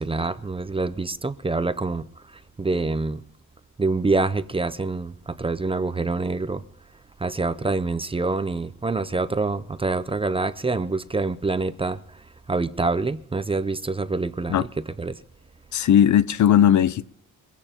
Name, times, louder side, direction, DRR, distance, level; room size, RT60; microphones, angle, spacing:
voice 1, 0.0-2.1 2.6-3.2 3.8-6.6 7.2-12.0 12.5-14.7 15.0-15.2, right 3 dB, 15° right, 0.6 m, -26 dB
voice 2, 15.7-17.1, left 10 dB, 55° left, 0.6 m, -17 dB
23.0 x 15.5 x 2.9 m
cardioid pair, 115°, 34 cm